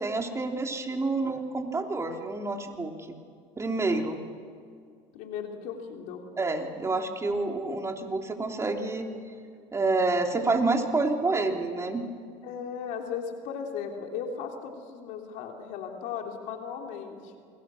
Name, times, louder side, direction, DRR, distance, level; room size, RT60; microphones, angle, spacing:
voice 1, 0.0-3.1 3.6-4.2 6.4-9.1 9.7-12.0, right 3 dB, 20° right, 3 dB, 3.0 m, -28 dB
voice 2, 5.1-6.2 12.4-17.3, left 7 dB, 70° left, 2 dB, 3.2 m, -36 dB
28.5 x 22.0 x 6.3 m, 2.2 s
supercardioid pair, 95°, 14 cm